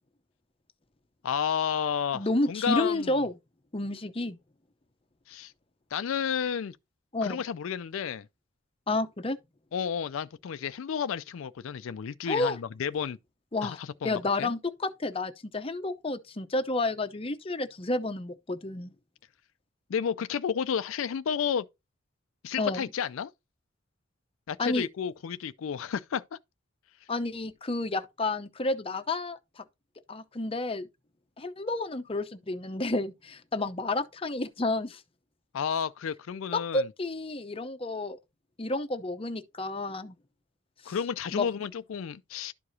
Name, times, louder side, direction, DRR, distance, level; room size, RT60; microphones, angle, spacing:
voice 1, 1.2-3.2 5.3-5.5 5.9-6.8 7.2-8.3 9.7-13.2 13.6-14.5 19.9-21.7 22.4-23.3 24.5-26.4 35.5-36.9 40.9-42.5, left 7 dB, 80° left, 0.4 m, -31 dB
voice 2, 2.1-3.4 3.7-4.4 7.1-7.4 8.9-9.4 12.3-12.6 13.5-18.9 22.6-22.9 24.6-24.9 27.1-29.6 30.1-30.9 31.4-35.0 36.5-38.2 38.6-40.1 40.9-41.0 41.3-41.5, left 2 dB, 25° left, 0.7 m, -30 dB
12.0 x 4.8 x 2.7 m
head